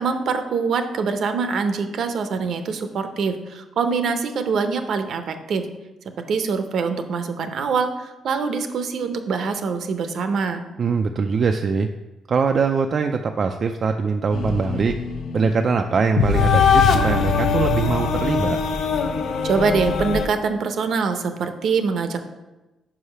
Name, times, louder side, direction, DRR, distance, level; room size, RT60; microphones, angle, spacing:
voice 1, 0.0-5.6 6.3-10.6 19.4-22.2, right 5 dB, 65° right, 8 dB, 0.7 m, -24 dB
voice 2, 10.8-11.9 12.3-15.0 15.3-18.6, right 5 dB, 45° right, 5 dB, 0.3 m, -22 dB
sound 1, 14.3-20.3, left 5 dB, 70° left, 0.6 m, -21 dB
5.4 x 4.9 x 5.4 m, 1.1 s
cardioid pair, 125°, 0 cm